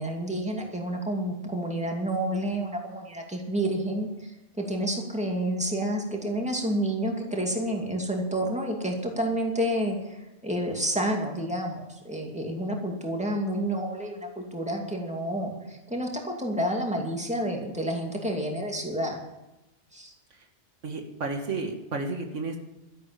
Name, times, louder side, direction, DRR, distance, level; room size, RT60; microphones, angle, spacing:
voice 1, 0.0-19.2 19.9-20.1, right 1 dB, 5° right, 1 dB, 2.4 m, -29 dB
voice 2, 20.8-22.6, right 3 dB, 80° right, 4 dB, 2.0 m, -32 dB
12.5 x 11.5 x 7.5 m, 0.99 s
omnidirectional pair, 1.2 m